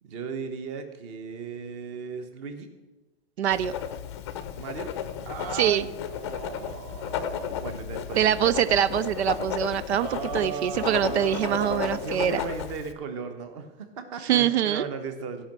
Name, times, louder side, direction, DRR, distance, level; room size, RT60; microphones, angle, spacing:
voice 1, 0.0-2.7 4.6-4.9 5.2-8.4 9.9-15.4, right 6 dB, 30° right, 7 dB, 1.1 m, -36 dB
voice 2, 3.4-3.7 5.5-5.8 8.2-10.1 10.3-12.4 14.2-14.8, right 10 dB, 90° right, 15 dB, 0.6 m, -24 dB
Writing, 3.5-12.9, left 9 dB, 25° left, 0.6 m, -34 dB
15.0 x 5.6 x 7.4 m, 1.1 s
hypercardioid pair, 170°, 32 cm